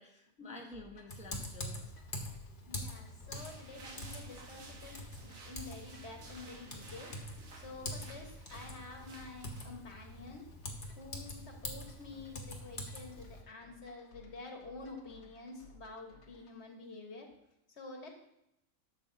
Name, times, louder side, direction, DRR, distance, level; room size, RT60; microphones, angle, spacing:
voice 1, 0.0-2.0, left 2 dB, 5° right, 0 dB, 0.9 m, -50 dB
sound 1, 0.7-16.6, left 3 dB, 85° left, 1.4 m, -60 dB
Typing, 1.1-13.4, left 1 dB, 40° left, 1.4 m, -45 dB
voice 2, 2.7-7.1 7.5-10.4 11.0-17.3 17.8-18.1, left 3 dB, 55° left, 2 dB, 1.6 m, -49 dB
sound 2, 3.3-9.6, right 3 dB, 85° right, 1.6 m, -54 dB
12.0 x 7.1 x 2.7 m, 0.82 s
omnidirectional pair, 1.4 m